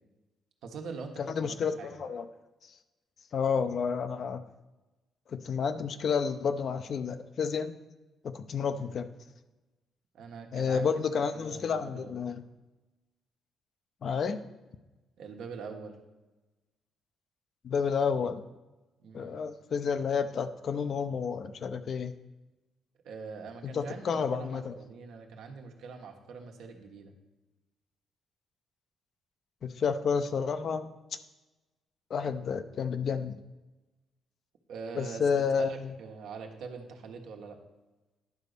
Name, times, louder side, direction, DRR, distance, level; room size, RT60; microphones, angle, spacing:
voice 1, 0.6-2.0 8.7-8.9 10.1-10.9 11.3-12.2 15.2-16.0 19.0-19.4 23.0-27.1 34.7-37.6, right 5 dB, 80° right, 2 dB, 1.3 m, -43 dB
voice 2, 1.3-2.3 3.3-4.4 5.3-7.7 8.2-9.1 10.5-12.4 14.0-14.4 17.6-18.4 19.1-22.1 23.6-24.7 29.6-30.9 32.1-33.4 34.9-35.9, left 6 dB, 55° left, 10 dB, 0.6 m, -30 dB
10.5 x 4.0 x 6.7 m, 1.1 s
cardioid pair, 90°, 0 cm